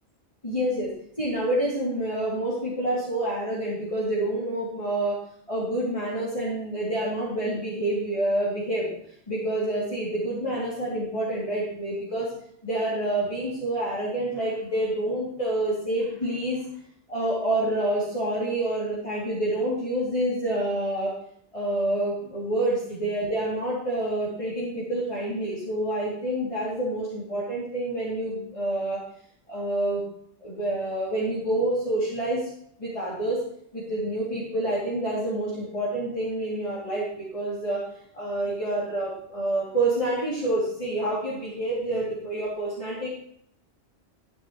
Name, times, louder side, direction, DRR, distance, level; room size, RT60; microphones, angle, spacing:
voice 1, 0.4-5.2 5.5-8.9 9.3-12.3 12.6-16.6 17.1-21.2 21.5-29.0 29.5-30.0 30.4-32.5 32.8-33.4 33.7-37.8 38.1-43.1, right 1 dB, 25° left, -8 dB, 3.3 m, -28 dB
13.5 x 10.5 x 3.3 m, 0.68 s
omnidirectional pair, 1.2 m